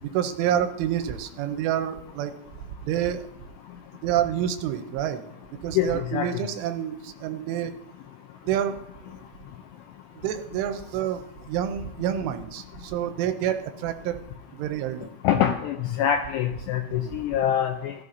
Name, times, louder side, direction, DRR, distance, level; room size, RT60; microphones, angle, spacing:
voice 1, 0.0-2.3 2.9-3.2 4.0-5.2 5.6-7.7 8.4-8.8 9.1-9.2 10.2-14.2 14.6-15.1 16.9-17.2, right 10 dB, 85° right, 8 dB, 3.1 m, -28 dB
voice 2, 5.8-6.3 15.2-17.9, left 9 dB, 85° left, 4 dB, 2.5 m, -24 dB
16.0 x 12.5 x 2.8 m, 0.82 s
omnidirectional pair, 5.7 m